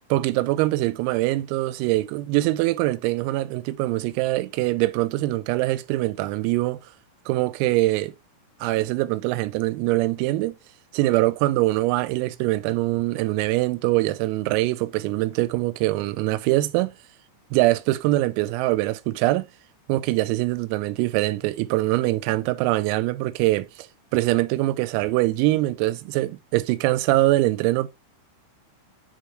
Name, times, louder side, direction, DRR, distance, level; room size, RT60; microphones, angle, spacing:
voice 1, 0.1-6.8 7.3-8.1 8.6-10.6 10.9-16.9 17.5-19.5 19.9-23.9 24.1-27.9, right 18 dB, 90° right, 3.3 m, -23 dB
9.6 x 3.8 x 3.1 m
omnidirectional pair, 5.9 m